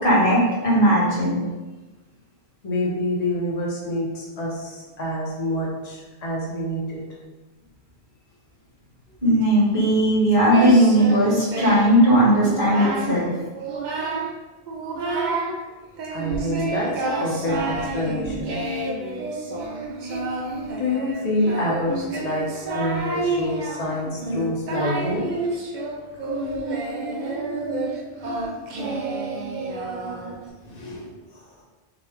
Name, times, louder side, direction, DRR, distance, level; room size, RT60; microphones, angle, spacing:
voice 1, 0.0-1.4 9.2-13.3, equal, 55° left, -7 dB, 1.8 m, -17 dB
voice 2, 2.6-7.0 16.1-18.6 20.8-22.5 22.7-25.3 29.7-30.4 30.6-31.1, left 1 dB, 40° left, -4 dB, 1.0 m, -27 dB
Singing, 10.5-12.0 12.4-13.2 13.5-14.4 14.7-15.6 16.0-30.5, right 2 dB, 50° right, 0.6 m, -29 dB
6.0 x 2.4 x 3.6 m, 1.2 s
omnidirectional pair, 1.1 m